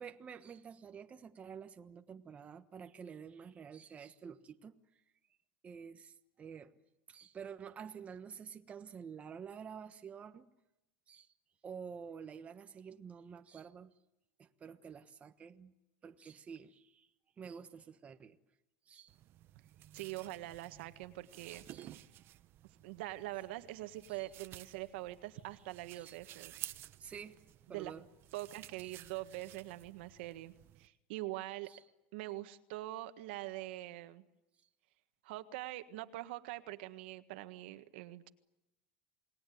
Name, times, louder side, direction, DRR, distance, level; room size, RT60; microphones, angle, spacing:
voice 1, 0.0-4.8 5.6-6.7 7.1-10.5 11.1-11.3 11.6-13.9 14.4-15.7 16.0-17.1 17.4-18.4 18.9-19.2 21.7-21.9 24.1-24.3 25.9-26.2 27.0-27.4 27.7-28.1 28.8-29.0 31.7-31.8, right 7 dB, 25° right, 1.2 m, -49 dB
sound 1, 19.1-30.9, right 13 dB, 40° right, 0.9 m, -53 dB
voice 2, 19.9-21.6 22.8-26.6 27.7-27.9 28.3-30.5 30.8-31.7 32.1-34.2 35.2-38.3, right 17 dB, 75° right, 1.6 m, -44 dB
29.0 x 19.5 x 9.4 m
supercardioid pair, 140°, 6 cm